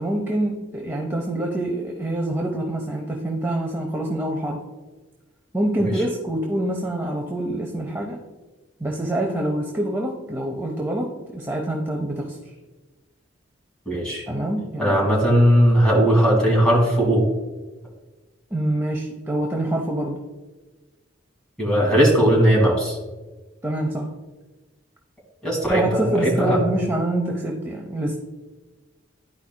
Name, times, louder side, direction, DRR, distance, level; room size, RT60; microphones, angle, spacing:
voice 1, 0.0-4.6 5.5-8.2 8.8-12.4 14.3-15.1 18.5-20.2 23.6-24.1 25.6-28.2, right 1 dB, 15° right, 0 dB, 0.6 m, -26 dB
voice 2, 13.9-14.2 14.8-17.3 21.6-23.0 25.4-26.6, equal, 5° left, -3 dB, 2.0 m, -18 dB
12.0 x 4.8 x 2.2 m, 1.2 s
head